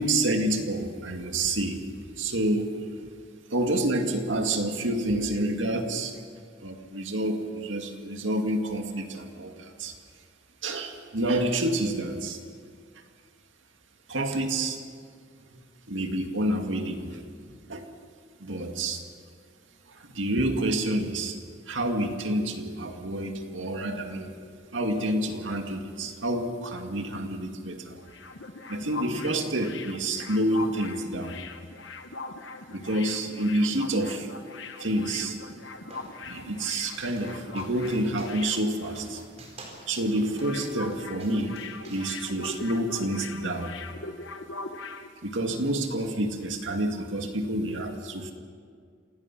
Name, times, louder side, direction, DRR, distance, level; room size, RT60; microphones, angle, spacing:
voice 1, 0.0-1.8 2.2-2.7 3.5-6.2 6.6-9.9 10.6-12.4 14.1-14.8 15.5-15.6 15.9-17.2 17.7-17.9 18.4-19.0 19.9-21.4 21.7-24.3 24.7-28.0 28.7-31.4 32.7-34.3 34.8-35.4 36.3-39.2 39.9-41.6 41.9-43.8 45.2-48.3, right 1 dB, 80° right, 4 dB, 2.2 m, -28 dB
sound 1, 27.9-39.4 39.6-39.8 40.1-45.1, left 3 dB, 70° left, 1.3 m, -41 dB
sound 2, 35.2-43.3, right 1 dB, 35° right, 4.4 m, -50 dB
27.0 x 17.5 x 6.1 m, 2.1 s
head